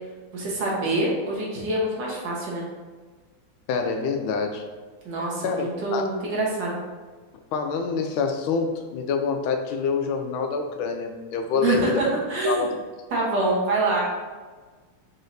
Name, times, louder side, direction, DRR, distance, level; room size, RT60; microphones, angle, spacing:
voice 1, 0.3-2.7 5.1-6.8 11.6-12.7 13.1-14.0, right 2 dB, 60° right, -4 dB, 1.7 m, -25 dB
voice 2, 3.7-4.6 5.4-6.1 7.5-12.0 12.4-12.7, left 5 dB, 80° left, 4 dB, 1.4 m, -26 dB
5.1 x 4.0 x 2.6 m, 1.4 s
omnidirectional pair, 2.3 m